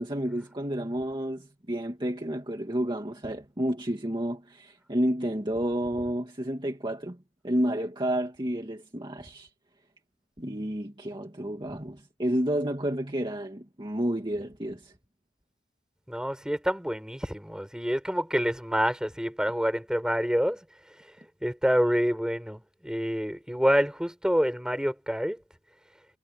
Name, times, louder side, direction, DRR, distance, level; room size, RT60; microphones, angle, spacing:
voice 1, 0.0-7.2 7.4-9.5 10.4-14.9, equal, 25° right, 2.1 m, -30 dB
voice 2, 16.1-20.6 21.0-21.1 21.4-25.4, equal, 5° right, 5.6 m, -27 dB
head